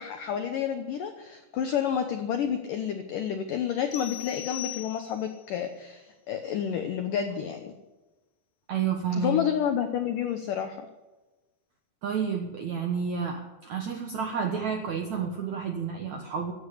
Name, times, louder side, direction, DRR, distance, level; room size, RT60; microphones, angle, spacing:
voice 1, 0.0-7.7 9.2-10.9, left 8 dB, 90° left, 6 dB, 1.9 m, -30 dB
sound 1, 3.9-5.5, left 14 dB, 70° left, 3.1 m, -39 dB
voice 2, 8.7-9.4 12.0-16.5, right 6 dB, 90° right, 3 dB, 1.6 m, -30 dB
15.0 x 8.7 x 9.9 m, 1.1 s
omnidirectional pair, 5.3 m